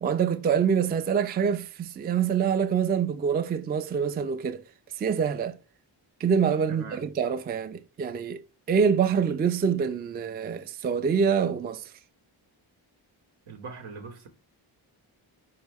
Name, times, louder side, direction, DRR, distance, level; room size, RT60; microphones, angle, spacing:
voice 1, 0.0-4.6 5.0-5.6 6.2-8.4 8.7-11.8, right 7 dB, 25° right, 0.3 m, -25 dB
voice 2, 6.7-7.0 13.5-14.3, right 5 dB, 75° right, 0.9 m, -41 dB
4.5 x 2.1 x 3.4 m
cardioid pair, 40°, 49 cm